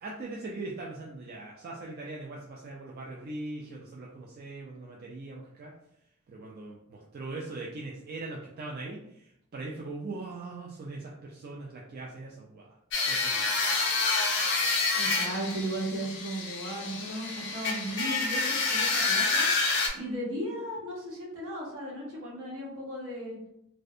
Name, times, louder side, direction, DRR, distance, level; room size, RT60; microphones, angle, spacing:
voice 1, 0.0-5.7 6.3-12.7 13.0-13.6, right 2 dB, 45° right, -2 dB, 0.3 m, -41 dB
sound 1, 12.9-19.9, left 3 dB, 55° left, 0.5 m, -28 dB
voice 2, 15.0-19.5 19.9-23.4, right 1 dB, 75° right, -4 dB, 1.0 m, -36 dB
2.4 x 2.1 x 2.6 m, 0.76 s
head